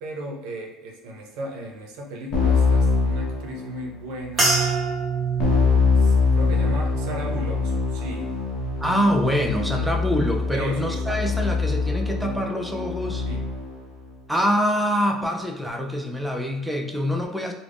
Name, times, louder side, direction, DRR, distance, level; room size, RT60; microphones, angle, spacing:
voice 1, 0.0-4.6 5.9-8.3 10.5-11.4 13.2-13.5 14.4-14.5, right 1 dB, 75° right, 0 dB, 0.5 m, -35 dB
Keyboard (musical), 2.3-4.0 5.4-13.8, left 4 dB, 55° left, 0.7 m, -23 dB
sound 1, 4.2-11.1, right 15 dB, 55° right, 0.8 m, -44 dB
sound 2, 4.4-8.9 9.3-9.9 10.5-10.7, right 4 dB, 25° right, 0.9 m, -28 dB
voice 2, 8.8-13.3 14.3-17.5, equal, 5° right, 2 dB, 0.3 m, -25 dB
2.4 x 2.0 x 3.4 m, 0.92 s
cardioid pair, 130°, 0 cm